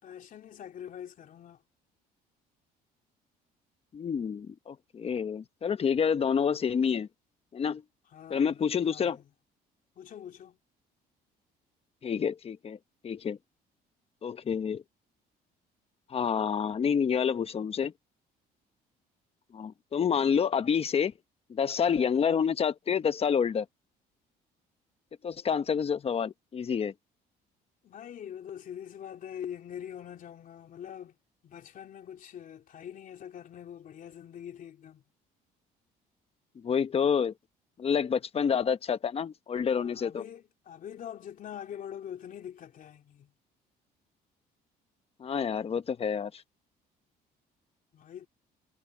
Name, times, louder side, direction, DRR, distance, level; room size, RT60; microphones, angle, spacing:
voice 1, 0.0-1.6 8.1-9.2 10.0-10.6 22.1-22.4 27.8-31.2 31.4-35.0 39.7-43.3 47.9-48.3, left 9 dB, 55° left, 3.0 m, -44 dB
voice 2, 3.9-7.1 7.5-7.8 8.3-9.2 12.0-12.8 13.0-13.4 14.2-14.8 16.1-17.9 19.5-21.1 21.5-23.6 25.2-26.9 36.6-37.3 37.8-40.2 45.2-46.4, left 7 dB, 35° left, 1.1 m, -28 dB
cardioid pair, 110°, 17 cm